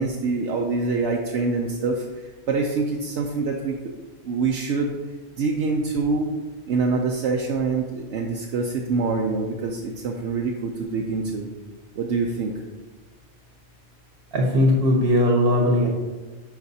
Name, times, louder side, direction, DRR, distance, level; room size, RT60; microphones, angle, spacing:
voice 1, 0.0-2.1 2.5-3.7 4.2-4.9 5.4-6.3 6.7-11.5 12.0-12.5, right 4 dB, 85° right, 0 dB, 1.0 m, -25 dB
voice 2, 14.3-15.9, left 1 dB, 60° right, 0 dB, 1.2 m, -19 dB
10.5 x 5.1 x 2.8 m, 1.3 s
omnidirectional pair, 1.1 m